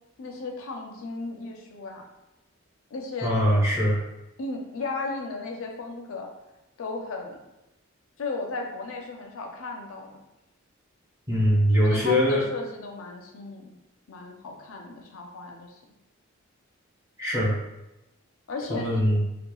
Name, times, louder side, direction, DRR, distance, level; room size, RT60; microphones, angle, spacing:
voice 1, 0.2-2.1 2.9-3.3 4.4-6.3 6.8-7.4 8.2-10.1 11.8-13.8 14.1-15.8 18.5-19.0, left 3 dB, 80° left, 2 dB, 0.5 m, -35 dB
voice 2, 3.2-4.0 11.3-12.4 17.2-17.6 18.7-19.2, equal, 15° right, -7 dB, 0.6 m, -22 dB
2.9 x 2.1 x 2.2 m, 0.94 s
head